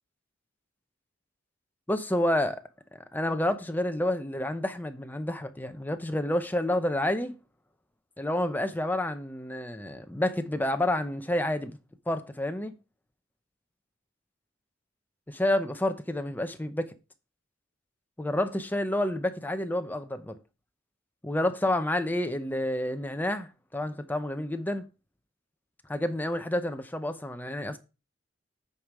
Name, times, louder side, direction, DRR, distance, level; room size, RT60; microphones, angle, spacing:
voice 1, 1.9-2.6 2.9-7.3 8.2-11.8 12.1-12.7 15.3-16.9 18.2-20.4 21.2-24.9 25.9-27.8, left 1 dB, 10° left, 0.7 m, -29 dB
8.5 x 5.3 x 4.7 m
head